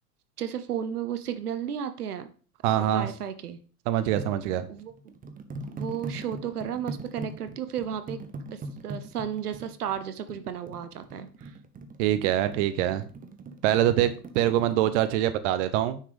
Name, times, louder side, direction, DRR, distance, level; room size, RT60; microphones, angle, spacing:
voice 1, 0.4-2.3 2.8-3.6 4.4-4.9 5.7-8.2 8.5-11.5, right 9 dB, 75° right, 11 dB, 1.0 m, -34 dB
voice 2, 2.6-3.1 3.9-4.7 12.0-13.0 13.6-16.0, right 12 dB, 50° right, 12 dB, 0.8 m, -24 dB
sound 1, 4.2-14.9, right 2 dB, 20° right, 0.9 m, -41 dB
9.8 x 6.0 x 3.5 m, 0.39 s
figure-of-eight pair, 85°, 46 cm